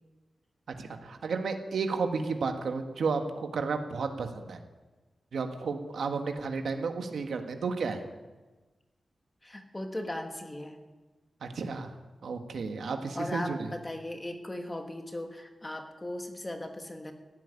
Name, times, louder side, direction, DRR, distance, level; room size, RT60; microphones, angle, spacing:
voice 1, 0.8-4.6 5.3-8.0 11.4-11.9 12.2-13.7, right 4 dB, 80° right, 6 dB, 1.4 m, -32 dB
voice 2, 9.4-10.8 13.1-17.1, left 1 dB, 15° left, 5 dB, 1.3 m, -38 dB
16.0 x 8.3 x 9.8 m, 1.2 s
wide cardioid pair, 180°, 0 cm